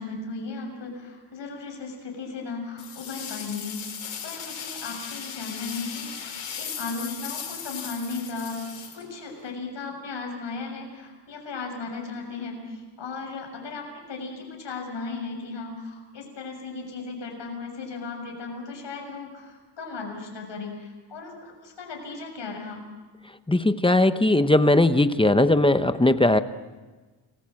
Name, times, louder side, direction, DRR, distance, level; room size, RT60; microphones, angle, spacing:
voice 1, 0.0-3.8 4.2-22.8, left 4 dB, 60° left, 2 dB, 7.0 m, -36 dB
sound 1, 2.8-9.5, left 7 dB, 80° left, 5.6 m, -37 dB
voice 2, 23.5-26.4, left 1 dB, 10° left, 11 dB, 0.8 m, -19 dB
30.0 x 21.0 x 7.6 m, 1.3 s
wide cardioid pair, 150°, 48 cm